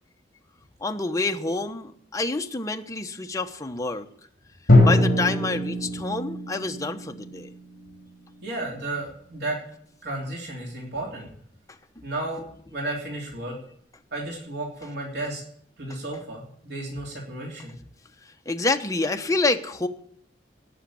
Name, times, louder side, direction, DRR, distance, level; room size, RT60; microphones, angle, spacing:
voice 1, 0.8-4.1 4.8-7.5 18.5-19.9, left 3 dB, 20° left, 5 dB, 1.0 m, -27 dB
Drum, 4.7-8.5, left 1 dB, 50° left, 3.4 m, -22 dB
voice 2, 8.4-9.6 10.0-11.3 12.0-12.4 12.7-13.6 14.1-15.4 15.8-17.7, right 2 dB, 65° right, -2 dB, 3.2 m, -33 dB
17.5 x 6.5 x 8.6 m, 0.66 s
head